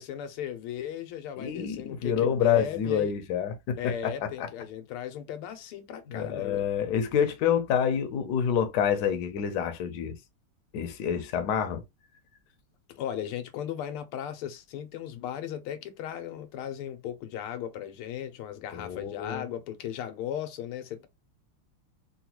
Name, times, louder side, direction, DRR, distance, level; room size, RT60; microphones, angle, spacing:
voice 1, 0.0-3.1 3.8-6.6 12.9-21.1, left 10 dB, 90° left, 1.6 m, -36 dB
voice 2, 1.4-4.5 6.1-10.1 10.7-11.8 18.7-19.4, left 8 dB, 65° left, 1.1 m, -28 dB
3.9 x 2.3 x 2.9 m
omnidirectional pair, 2.4 m